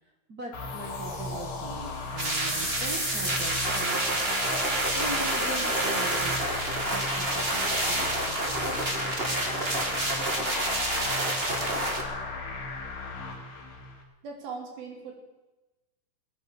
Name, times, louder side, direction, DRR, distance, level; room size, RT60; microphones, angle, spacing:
voice 1, 0.3-4.3 4.7-6.3 6.9-8.8, right 2 dB, 55° right, 2 dB, 1.0 m, -40 dB
sound 1, 0.5-14.0, left 3 dB, 65° left, 4.3 m, -36 dB
sound 2, 2.2-12.0, right 1 dB, 20° right, 1.6 m, -28 dB
voice 2, 14.2-15.1, right 5 dB, 75° right, 3 dB, 4.4 m, -39 dB
20.0 x 9.4 x 7.1 m, 1.1 s
omnidirectional pair, 4.3 m